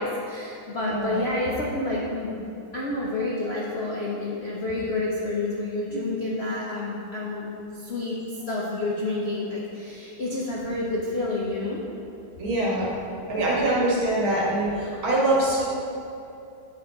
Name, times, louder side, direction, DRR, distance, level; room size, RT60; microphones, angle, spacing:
voice 1, 0.0-2.4 2.7-8.2 8.5-11.8, left 2 dB, 60° left, -5 dB, 0.6 m, -29 dB
voice 2, 0.9-1.3 5.9-6.0 12.4-12.9 13.3-15.6, right 1 dB, 85° right, -6 dB, 2.6 m, -24 dB
7.9 x 6.7 x 3.8 m, 2.7 s
omnidirectional pair, 2.2 m